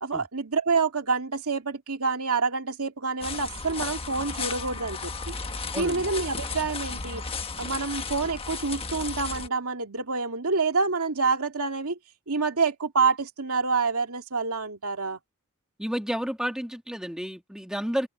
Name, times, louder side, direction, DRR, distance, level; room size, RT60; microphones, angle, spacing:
voice 1, 0.0-5.3 5.7-7.2 7.6-12.0 12.3-15.2, right 4 dB, 75° right, 2.4 m, -27 dB
sound 1, 3.2-9.5, left 4 dB, 25° left, 1.3 m, -34 dB
voice 2, 5.7-6.1 15.8-18.1, equal, 5° right, 2.7 m, -31 dB
head